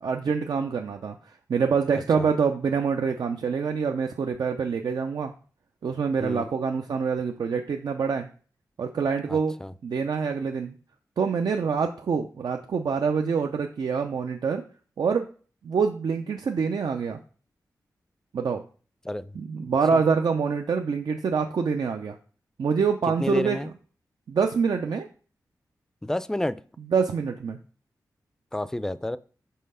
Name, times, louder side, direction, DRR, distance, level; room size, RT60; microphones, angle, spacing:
voice 1, 0.0-5.3 5.8-8.3 8.8-9.5 9.8-10.8 11.2-14.6 15.0-15.3 15.6-17.2 18.3-18.6 19.3-22.2 22.6-23.6 24.3-25.1 26.9-27.6, right 5 dB, 75° right, 4 dB, 0.5 m, -26 dB
voice 2, 1.9-2.3 6.2-6.5 9.3-9.7 19.0-19.3 19.9-20.0 23.2-23.7 26.0-26.6 28.5-29.2, left 1 dB, 10° left, 16 dB, 0.4 m, -30 dB
5.6 x 3.1 x 5.5 m, 0.40 s
cardioid pair, 55°, 7 cm